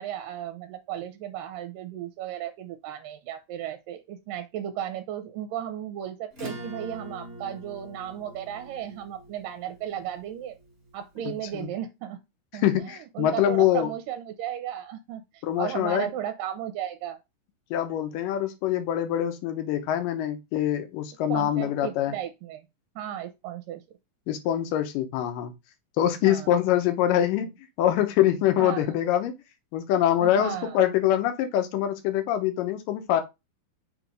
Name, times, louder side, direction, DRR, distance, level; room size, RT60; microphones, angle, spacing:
voice 1, 0.0-10.6 10.9-12.2 12.5-17.2 21.3-22.6 23.0-23.8 26.2-26.5 28.6-28.8 30.2-30.8, right 11 dB, 85° right, 2.3 m, -35 dB
Acoustic guitar / Strum, 6.3-11.3, right 1 dB, 25° right, 1.4 m, -43 dB
voice 2, 12.5-13.9 15.4-16.1 17.7-22.1 24.3-25.5 26.0-27.5 27.8-29.3 29.7-33.2, left 11 dB, 85° left, 2.5 m, -24 dB
6.3 x 3.0 x 5.2 m
omnidirectional pair, 3.9 m